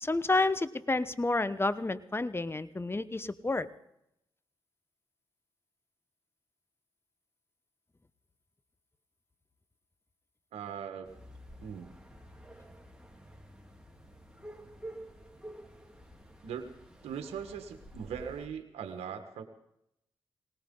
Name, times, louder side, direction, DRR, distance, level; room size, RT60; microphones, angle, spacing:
voice 1, 0.0-3.7, left 2 dB, 25° left, 14 dB, 1.1 m, -30 dB
voice 2, 10.5-11.1 11.6-11.9 16.4-16.7 17.0-19.4, right 7 dB, 80° right, 6 dB, 1.4 m, -40 dB
sound 1, 11.0-18.5, right 1 dB, 5° right, 3.0 m, -50 dB
19.0 x 18.5 x 3.8 m, 0.79 s
supercardioid pair, 40°, 10 cm